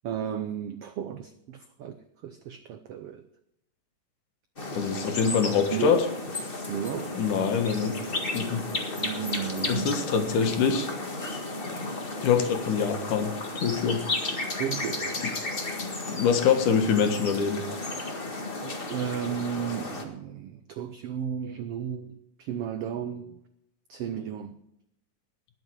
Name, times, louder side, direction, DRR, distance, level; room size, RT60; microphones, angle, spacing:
voice 1, 0.0-3.3 5.7-6.0 6.7-7.2 9.0-10.1 14.6-15.8 16.1-16.3 18.6-23.4 23.9-24.6, right 9 dB, 85° right, 9 dB, 1.3 m, -34 dB
sound 1, 4.6-20.0, left 2 dB, 25° left, 1.1 m, -33 dB
voice 2, 4.7-6.0 7.2-7.9 8.3-8.6 9.6-10.9 12.2-13.3 13.6-14.6 16.1-17.6, left 6 dB, 75° left, 6 dB, 3.0 m, -25 dB
20.5 x 7.5 x 4.7 m, 0.80 s
omnidirectional pair, 3.7 m